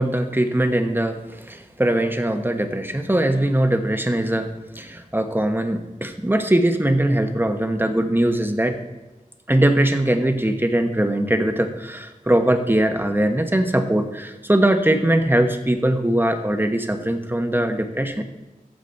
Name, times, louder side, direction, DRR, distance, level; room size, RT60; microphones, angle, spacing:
voice 1, 0.0-8.8 9.5-18.2, right 1 dB, 15° right, 6 dB, 1.1 m, -21 dB
14.5 x 5.1 x 4.2 m, 1.2 s
wide cardioid pair, 55°, 14 cm